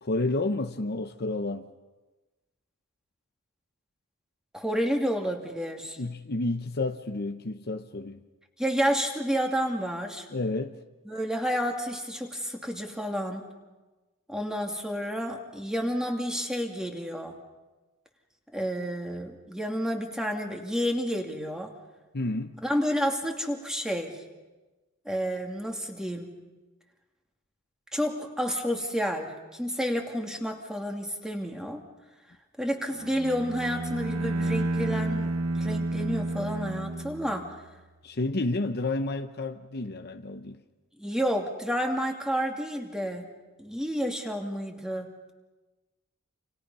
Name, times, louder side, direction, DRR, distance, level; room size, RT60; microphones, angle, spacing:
voice 1, 0.0-1.7 6.0-8.2 10.3-10.8 22.1-22.6 38.0-40.6, left 2 dB, 50° left, 0.9 m, -30 dB
voice 2, 4.5-6.0 8.6-10.3 11.1-13.5 14.3-17.4 18.5-21.7 22.6-24.2 25.0-26.4 27.9-31.8 32.6-37.5 41.0-43.3 43.6-45.1, equal, 5° right, 2.5 m, -30 dB
Bowed string instrument, 32.9-37.7, right 2 dB, 70° right, 0.9 m, -31 dB
29.5 x 28.0 x 5.6 m
head